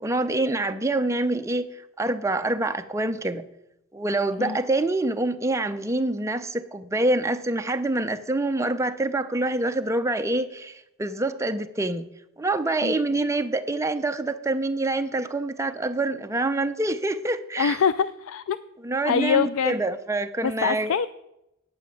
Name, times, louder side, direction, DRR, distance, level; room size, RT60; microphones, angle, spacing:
voice 1, 0.0-3.5 3.9-12.1 12.4-17.8 18.8-20.9, right 2 dB, 15° right, 8 dB, 0.5 m, -26 dB
voice 2, 17.6-18.6 19.0-19.7 20.4-21.1, left 7 dB, 80° left, 14 dB, 0.4 m, -24 dB
9.6 x 5.9 x 8.3 m, 0.85 s
head